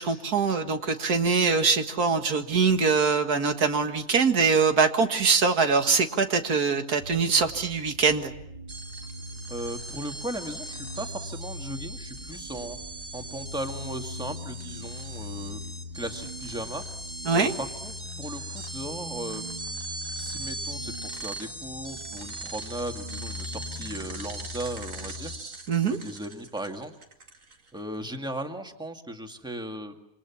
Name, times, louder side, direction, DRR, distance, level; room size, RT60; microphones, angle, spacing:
voice 1, 0.0-8.3 17.3-17.5 25.7-26.0, right 5 dB, 80° right, 6 dB, 2.2 m, -23 dB
sound 1, 7.0-25.4, left 3 dB, 20° right, 2.4 m, -41 dB
sound 2, 8.7-27.8, right 2 dB, 55° right, 2.5 m, -40 dB
voice 2, 9.5-12.8 13.1-15.6 15.9-16.8 17.3-19.6 20.2-25.3 25.8-26.9 27.7-30.0, right 1 dB, 5° right, 4 dB, 2.0 m, -37 dB
27.0 x 26.5 x 7.2 m, 0.81 s
omnidirectional pair, 1.6 m